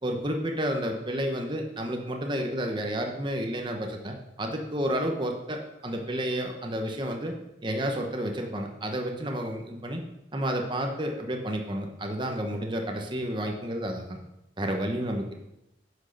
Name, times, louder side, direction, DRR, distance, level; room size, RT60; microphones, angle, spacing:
voice 1, 0.0-7.3 7.6-10.0 10.3-14.2 14.6-15.3, equal, 25° right, 2 dB, 1.1 m, -31 dB
10.5 x 6.4 x 6.5 m, 0.89 s
head